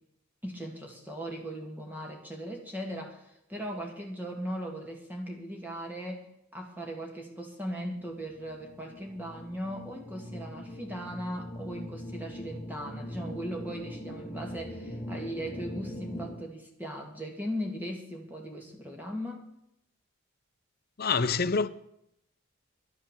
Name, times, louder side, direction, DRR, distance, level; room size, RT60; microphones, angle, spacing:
voice 1, 0.4-19.5, equal, 10° right, 2.3 m, -38 dB
sound 1, 8.0-16.4, equal, 15° left, 1.5 m, -42 dB
voice 2, 21.0-21.7, left 5 dB, 45° left, 0.6 m, -26 dB
11.5 x 9.7 x 7.5 m
head